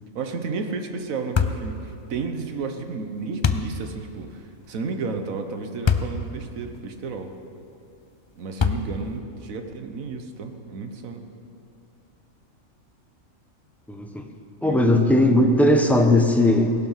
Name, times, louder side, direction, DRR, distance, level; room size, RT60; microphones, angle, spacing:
voice 1, 0.1-7.3 8.3-11.3 14.6-15.5, right 4 dB, 80° right, 6 dB, 1.5 m, -32 dB
sound 1, 1.4-1.7 3.4-3.7 5.9-6.2 6.8-6.9 8.6-9.1, left 6 dB, 40° left, 0.4 m, -22 dB
voice 2, 13.9-14.3 14.6-16.7, left 1 dB, ahead, 4 dB, 0.9 m, -18 dB
17.5 x 12.0 x 5.7 m, 2.6 s
omnidirectional pair, 1.4 m